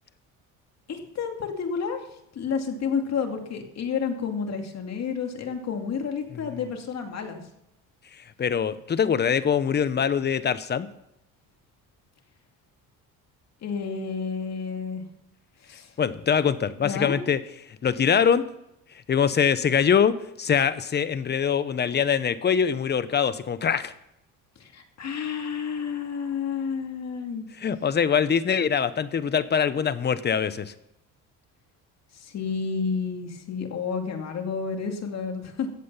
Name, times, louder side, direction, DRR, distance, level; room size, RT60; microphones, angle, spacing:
voice 1, 0.9-2.1 2.3-7.4 13.6-15.0 15.6-15.9 16.8-17.2 24.6-27.5 32.1-35.8, left 6 dB, 50° left, 4 dB, 2.5 m, -30 dB
voice 2, 8.1-10.9 16.0-17.4 17.8-18.4 19.1-23.9 27.6-30.7, left 7 dB, 30° left, 14 dB, 0.9 m, -23 dB
15.0 x 8.5 x 5.6 m, 0.83 s
cardioid pair, 110°, 35 cm